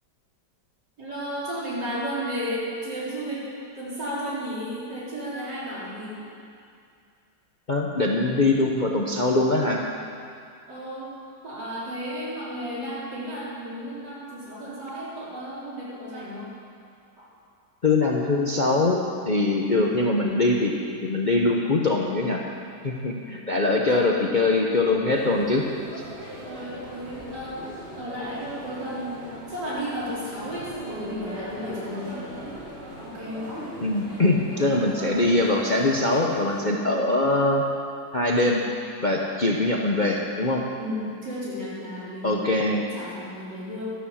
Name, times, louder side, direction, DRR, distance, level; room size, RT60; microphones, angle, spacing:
voice 1, 1.0-3.5 3.8-6.3 10.7-11.2 11.4-16.5 23.9-24.4 26.5-27.6 27.9-32.2 33.0-33.7 40.8-42.5 42.9-43.9, equal, 70° right, -8 dB, 4.7 m, -33 dB
voice 2, 7.7-9.8 17.8-20.7 21.0-22.4 22.8-25.6 33.8-37.6 38.1-38.6 39.0-40.6 42.2-42.8, left 2 dB, 35° left, -1 dB, 0.8 m, -22 dB
sound 1, 25.1-36.7, equal, 40° right, 3.4 m, -40 dB
12.5 x 11.5 x 7.3 m, 2.4 s
omnidirectional pair, 1.9 m